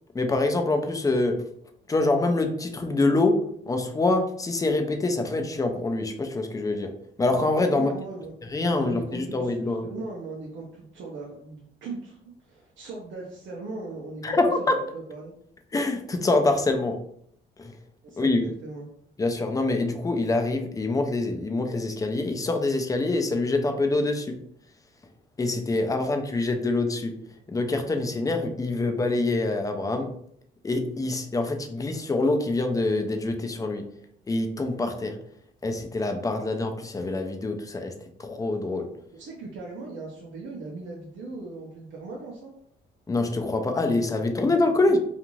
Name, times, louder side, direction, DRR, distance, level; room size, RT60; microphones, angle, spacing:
voice 1, 0.1-1.4 1.9-3.4 3.7-6.9 7.2-7.9 8.5-9.8 14.2-14.8 15.7-17.0 18.2-18.4 19.2-24.3 25.4-27.1 27.5-30.1 30.6-33.8 34.3-35.1 35.6-37.9 38.2-38.9 43.1-45.0, left 2 dB, 15° left, 5 dB, 0.4 m, -25 dB
voice 2, 7.7-8.3 8.6-15.3 18.0-18.9 39.1-42.5 44.8-44.9, right 3 dB, 70° right, -3 dB, 0.7 m, -39 dB
2.5 x 2.5 x 3.0 m, 0.68 s
cardioid pair, 90°, 20 cm